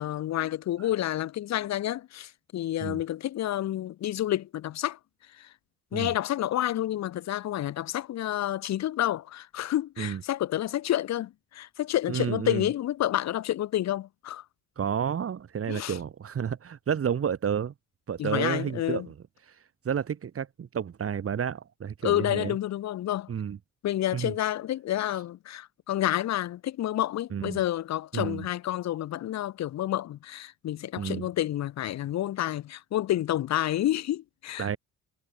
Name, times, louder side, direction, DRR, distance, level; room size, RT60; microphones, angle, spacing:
voice 1, 0.0-5.0 5.4-5.5 5.9-14.4 15.7-16.0 18.2-19.1 22.0-23.3 23.8-34.8, left 13 dB, 65° left, 0.8 m, -29 dB
voice 2, 12.1-12.7 14.8-17.7 18.1-19.1 19.8-22.6 23.3-23.6 24.1-24.3 27.3-27.6 28.1-28.5 31.0-31.3 34.6-34.8, right 8 dB, 50° right, 2.4 m, -31 dB
cardioid pair, 90°, 30 cm